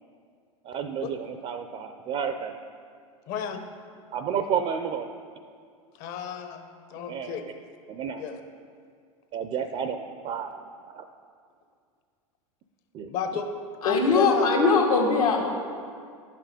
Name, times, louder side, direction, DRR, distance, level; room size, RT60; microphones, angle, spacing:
voice 1, 0.6-2.6 4.1-5.1 7.1-7.5 7.9-8.2 9.3-11.1 12.9-13.1, right 7 dB, 35° right, 8 dB, 0.5 m, -31 dB
voice 2, 3.3-3.6 6.0-6.6 6.9-7.4 8.2-8.4 13.1-13.5 13.8-14.5, left 6 dB, 50° left, 6 dB, 1.0 m, -30 dB
voice 3, 13.8-15.5, left 4 dB, 80° left, -1 dB, 1.7 m, -21 dB
10.5 x 6.0 x 5.1 m, 2.2 s
hypercardioid pair, 95°, 18 cm